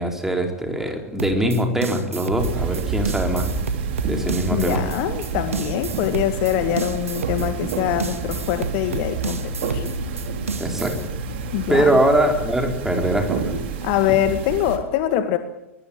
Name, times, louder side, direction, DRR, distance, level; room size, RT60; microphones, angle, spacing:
voice 1, 0.0-3.5 4.0-4.8 10.6-11.0 11.7-13.5, right 1 dB, 5° right, 3 dB, 4.5 m, -22 dB
sound 1, 1.2-11.1, right 5 dB, 75° right, 1.9 m, -31 dB
sound 2, 2.4-14.8, right 4 dB, 50° right, 3.9 m, -29 dB
voice 2, 4.5-9.9 11.5-12.0 13.8-15.4, left 11 dB, 45° left, 9 dB, 1.9 m, -23 dB
23.0 x 20.5 x 8.9 m, 0.88 s
figure-of-eight pair, 95°, 8 cm